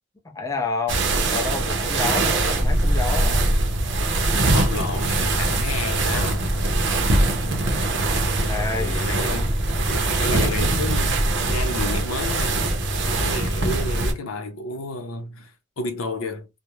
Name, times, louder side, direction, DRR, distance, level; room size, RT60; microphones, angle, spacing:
voice 1, 0.3-3.5 8.4-9.0, left 4 dB, 15° left, 0.4 m, -29 dB
sound 1, 0.9-14.1, right 2 dB, 60° right, 0.6 m, -22 dB
voice 2, 4.5-6.6 8.4-12.6 13.0-16.5, left 2 dB, 90° left, 0.6 m, -31 dB
2.3 x 2.0 x 2.9 m
head